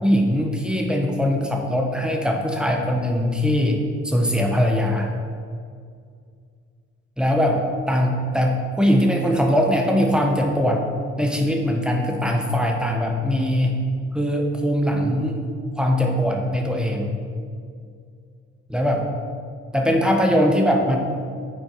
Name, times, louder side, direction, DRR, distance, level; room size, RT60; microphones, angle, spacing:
voice 1, 0.0-3.8 4.0-5.1 7.2-7.6 7.9-10.8 11.2-13.8 14.1-15.4 15.8-17.1 18.7-19.0 19.7-21.0, equal, 5° right, 1 dB, 1.1 m, -21 dB
8.8 x 4.4 x 4.6 m, 2.2 s
cardioid pair, 90°, 30 cm